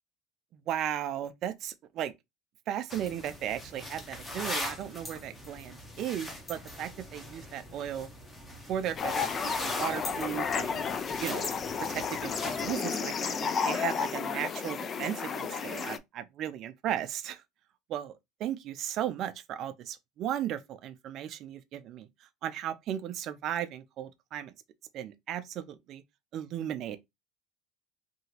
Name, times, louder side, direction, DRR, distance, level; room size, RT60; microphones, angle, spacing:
voice 1, 0.5-2.1 2.7-8.1 8.7-9.3 9.6-10.9 11.2-11.5 11.9-17.4 17.9-18.1 18.4-22.1 22.4-24.5 24.9-26.0 26.3-27.0, right 10 dB, 50° right, 0.5 m, -36 dB
sound 1, 2.9-12.7, left 1 dB, 15° left, 0.8 m, -41 dB
sound 2, 9.0-16.0, left 6 dB, 30° left, 0.3 m, -32 dB
2.9 x 2.7 x 2.8 m
cardioid pair, 135°, 0 cm